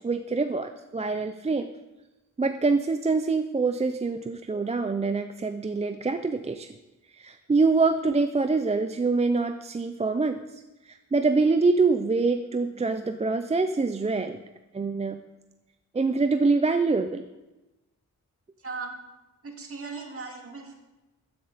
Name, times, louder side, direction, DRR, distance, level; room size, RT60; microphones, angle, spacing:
voice 1, 0.0-1.7 2.4-6.7 7.2-10.4 10.9-14.4 14.7-15.2 15.9-17.2, right 3 dB, 20° right, 8 dB, 0.4 m, -25 dB
voice 2, 18.6-19.0 19.4-20.7, right 4 dB, 45° right, 1 dB, 2.2 m, -37 dB
14.5 x 10.5 x 4.1 m, 1.0 s
wide cardioid pair, 175°, 32 cm